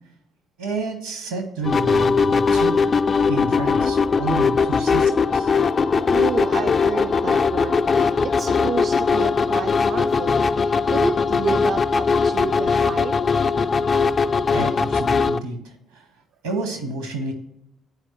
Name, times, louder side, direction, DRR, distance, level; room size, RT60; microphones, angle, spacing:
voice 1, 0.6-2.8 3.3-5.5 14.5-16.0 16.4-17.3, right 3 dB, 75° right, 6 dB, 1.1 m, -30 dB
sound 1, 1.6-15.4, left 5 dB, 40° left, 0.3 m, -20 dB
voice 2, 6.1-13.4, right 6 dB, 55° right, 5 dB, 0.3 m, -31 dB
9.6 x 4.5 x 2.9 m, 0.82 s
figure-of-eight pair, 45°, 0 cm